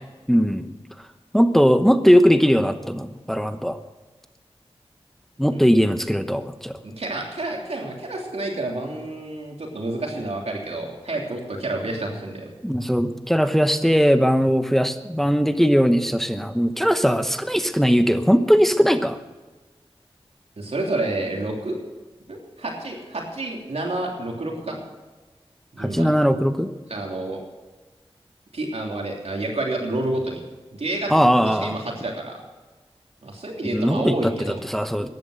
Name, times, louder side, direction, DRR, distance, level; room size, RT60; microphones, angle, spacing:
voice 1, 0.3-0.7 1.3-3.8 5.4-6.8 12.6-19.2 25.8-26.7 31.1-31.8 33.7-35.1, equal, 5° left, 9 dB, 0.9 m, -19 dB
voice 2, 6.8-12.5 20.6-21.8 22.3-24.8 25.7-26.1 26.9-27.4 28.5-30.4 30.7-32.4 33.2-34.6, right 2 dB, 90° right, 0 dB, 3.1 m, -29 dB
14.5 x 11.0 x 6.5 m, 1.2 s
wide cardioid pair, 50°, 10 cm